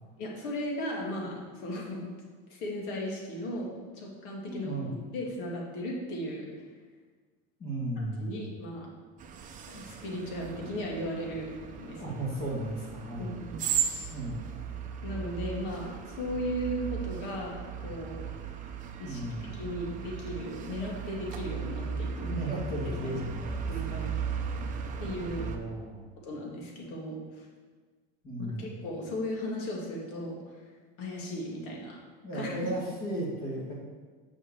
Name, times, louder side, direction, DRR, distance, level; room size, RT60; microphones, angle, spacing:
voice 1, 0.2-2.1 2.5-6.7 8.2-8.9 9.7-12.2 13.2-13.5 15.0-18.2 19.0-19.2 19.6-22.3 23.7-24.1 25.0-25.5 26.2-27.5 28.6-30.7 31.0-32.0 32.3-32.6, equal, 65° left, -2 dB, 2.4 m, -36 dB
voice 2, 4.5-4.9 7.6-8.5 12.0-13.3 14.1-14.4 19.0-19.6 22.2-24.1 25.4-26.2 28.2-28.8 32.2-33.7, right 1 dB, 30° left, -4 dB, 2.3 m, -35 dB
sound 1, 9.2-25.6, right 6 dB, 25° right, 0.7 m, -37 dB
6.4 x 5.8 x 7.0 m, 1.5 s
cardioid pair, 160°, 29 cm